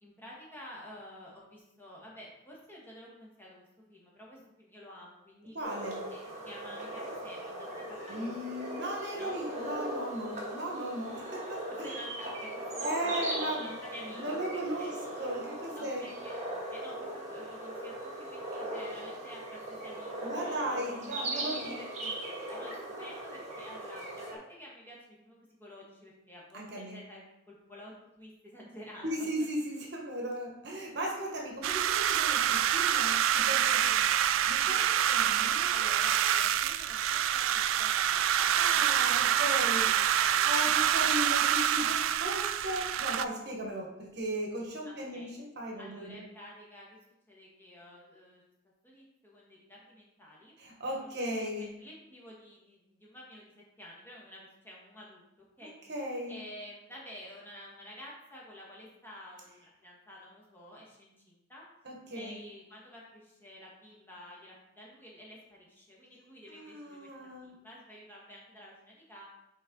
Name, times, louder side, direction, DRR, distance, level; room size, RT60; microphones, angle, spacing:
voice 1, 0.0-5.6 6.1-8.8 9.2-9.4 11.7-14.9 15.7-16.4 16.7-29.5 33.5-34.5 34.7-35.2 35.7-38.9 39.2-40.8 41.1-41.2 44.8-45.3 45.8-47.0 47.3-48.4 48.8-50.6 51.0-55.2 55.6-55.7 56.3-61.6 62.1-69.2, equal, 10° left, -5 dB, 1.6 m, -50 dB
voice 2, 5.5-6.0 8.1-11.9 12.8-13.7 14.1-14.9 15.2-16.1 20.2-21.8 26.5-27.0 29.0-33.8 34.5-35.9 36.1-36.3 38.5-46.2 50.6-51.7 55.6-56.4 61.8-62.4 66.5-67.5, right 1 dB, 55° right, 0 dB, 1.3 m, -37 dB
sound 1, 5.6-24.4, right 1 dB, 35° right, 1.6 m, -39 dB
sound 2, 31.6-43.2, right 10 dB, 75° right, 0.3 m, -27 dB
6.3 x 4.6 x 3.8 m, 0.86 s
head